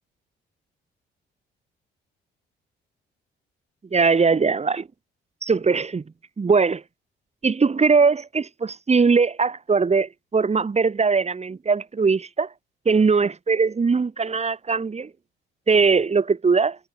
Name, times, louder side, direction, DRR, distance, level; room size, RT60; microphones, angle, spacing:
voice 1, 3.9-4.9 5.4-6.0 6.4-6.8 7.4-12.5 12.9-15.1 15.7-16.8, right 4 dB, 35° right, 7.3 m, -20 dB
cardioid pair, 90°, 20 cm